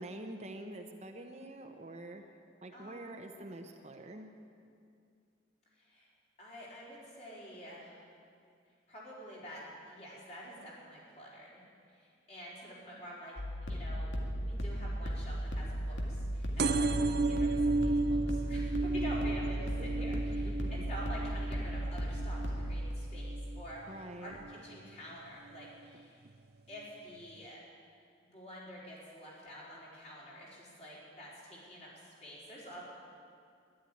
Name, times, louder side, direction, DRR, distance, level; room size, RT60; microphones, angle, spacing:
voice 1, 0.0-2.2 2.6-4.3 19.8-20.2 20.6-20.7 23.9-24.4, right 1 dB, 35° right, 4 dB, 0.9 m, -46 dB
voice 2, 2.7-3.3 5.8-6.1 6.4-8.0 8.9-11.6 11.9-13.3 13.6-26.2 26.7-27.6 28.3-32.8, equal, 35° left, -6 dB, 4.5 m, -48 dB
sound 1, 13.4-22.9, equal, 80° left, 2.1 m, -36 dB
sound 2, 16.6-23.8 24.3-24.8 25.6-25.7 25.9-26.0 26.3-26.4, right 3 dB, 55° right, 0.6 m, -33 dB
12.5 x 11.0 x 9.9 m, 2.4 s
head